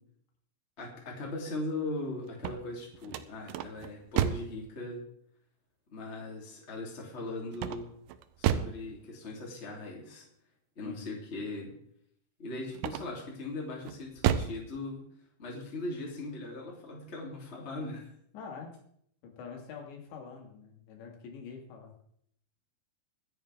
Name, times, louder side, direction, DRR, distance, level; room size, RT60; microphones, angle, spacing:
voice 1, 0.8-5.0 5.9-7.9 8.4-10.3 10.8-11.7 12.4-15.0 15.4-18.1, left 2 dB, 15° left, -2 dB, 2.6 m, -39 dB
sound 1, 2.3-4.6 7.5-8.8 12.7-13.3 13.8-14.6, right 10 dB, 80° right, 2.4 m, -31 dB
voice 2, 18.3-18.7 19.2-21.9, left 5 dB, 75° left, 1 dB, 4.3 m, -45 dB
23.5 x 9.0 x 3.6 m, 0.68 s
omnidirectional pair, 5.2 m